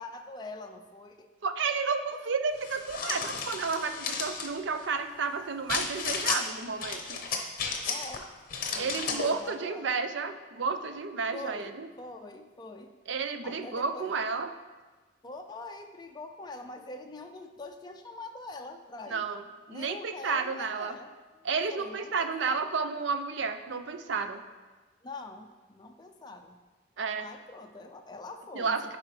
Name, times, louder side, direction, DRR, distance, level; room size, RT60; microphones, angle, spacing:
voice 1, 0.0-1.3 7.9-8.3 8.7-9.9 11.3-13.0 13.4-14.1 15.2-19.3 19.7-22.7 25.0-26.6 27.2-29.0, left 2 dB, 20° left, 4 dB, 0.4 m, -44 dB
voice 2, 1.4-7.2 8.7-11.9 13.1-14.5 19.1-19.4 19.7-21.0 21.4-24.4 27.0-27.3 28.5-29.0, right 5 dB, 60° right, 9 dB, 0.5 m, -31 dB
sound 1, 2.6-4.5 5.7-6.4 6.8-8.2 8.5-9.3, left 5 dB, 45° left, 0.7 m, -33 dB
10.5 x 4.9 x 3.2 m, 1.3 s
head